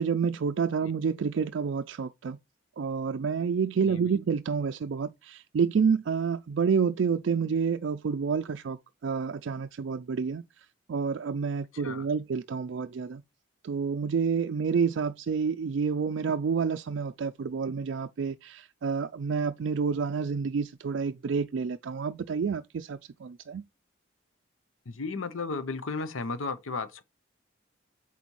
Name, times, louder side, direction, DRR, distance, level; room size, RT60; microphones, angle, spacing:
voice 1, 0.0-2.4 2.8-8.8 9.0-10.4 10.9-13.2 13.6-23.6, right 6 dB, 65° right, 0.4 m, -29 dB
voice 2, 3.9-4.2 11.7-12.1 24.9-27.0, left 4 dB, 85° left, 0.8 m, -34 dB
8.1 x 4.2 x 3.0 m
head